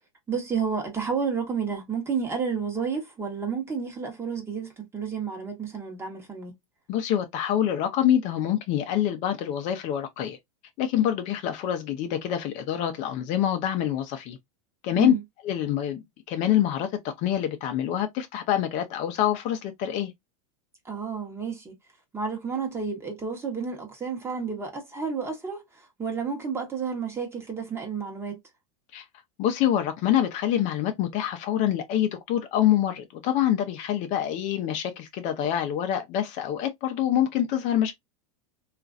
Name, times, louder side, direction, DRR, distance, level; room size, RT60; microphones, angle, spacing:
voice 1, 0.3-6.5 15.0-15.2 20.8-21.7 22.1-28.4, right 6 dB, 15° right, 1.0 m, -31 dB
voice 2, 6.9-10.4 10.8-14.4 14.8-15.1 15.4-16.0 16.3-20.1 28.9-29.0 29.4-37.9, left 11 dB, 40° left, 0.5 m, -26 dB
2.9 x 2.4 x 2.4 m
supercardioid pair, 135°, 18 cm